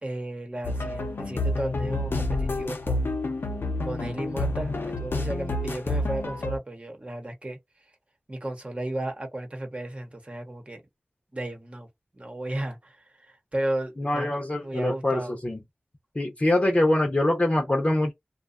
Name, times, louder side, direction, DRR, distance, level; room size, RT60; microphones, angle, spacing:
voice 1, 0.0-3.2 3.8-7.6 8.3-10.8 11.3-11.9 12.1-15.3, right 1 dB, 35° right, 1.0 m, -34 dB
sound 1, 0.6-6.6, left 2 dB, 80° left, 0.6 m, -29 dB
voice 2, 14.0-15.6 16.2-18.1, left 1 dB, 35° left, 0.7 m, -24 dB
2.6 x 2.3 x 2.4 m
wide cardioid pair, 45°, 4 cm